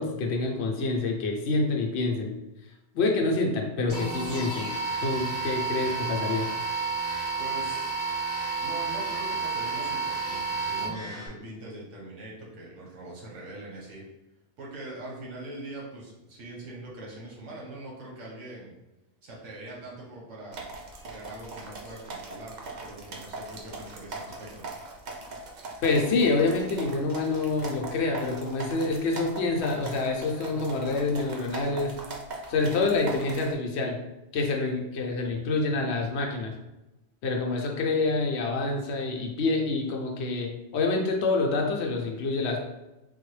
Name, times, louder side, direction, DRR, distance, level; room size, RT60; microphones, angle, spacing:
voice 1, 0.0-2.3 2.9-4.7 5.0-6.5 25.8-32.0 32.5-34.0 34.3-36.5 37.2-42.6, left 3 dB, 70° left, 1 dB, 0.8 m, -27 dB
sound 1, 3.9-11.3, right 4 dB, 20° right, 1.1 m, -31 dB
voice 2, 7.4-7.9 8.6-14.0 14.6-18.7 19.2-20.7 21.0-24.7, right 1 dB, 85° right, -3 dB, 1.3 m, -42 dB
sound 2, 20.5-33.5, right 2 dB, 55° right, 0.5 m, -40 dB
3.8 x 2.1 x 3.1 m, 0.97 s
omnidirectional pair, 1.2 m